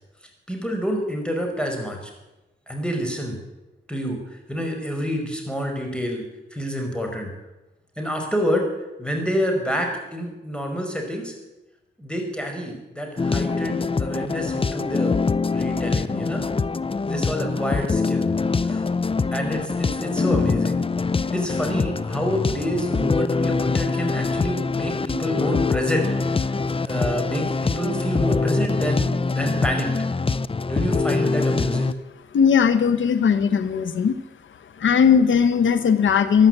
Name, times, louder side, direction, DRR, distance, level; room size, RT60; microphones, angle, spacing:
voice 1, 0.5-2.1 2.7-3.4 3.9-6.2 6.5-7.3 8.0-8.7 9.0-11.3 12.0-15.1 15.5-16.4 17.0-18.3 18.6-18.8 19.3-20.8 21.3-26.1 26.4-26.6 26.8-29.9 30.7-31.9, equal, 5° left, 2 dB, 5.3 m, -28 dB
sound 1, 13.2-31.9, left 4 dB, 30° left, 0.5 m, -24 dB
voice 2, 32.3-34.2 34.8-36.5, left 7 dB, 85° left, 12 dB, 1.1 m, -18 dB
15.5 x 11.5 x 8.1 m, 1.0 s
cardioid pair, 60°, 19 cm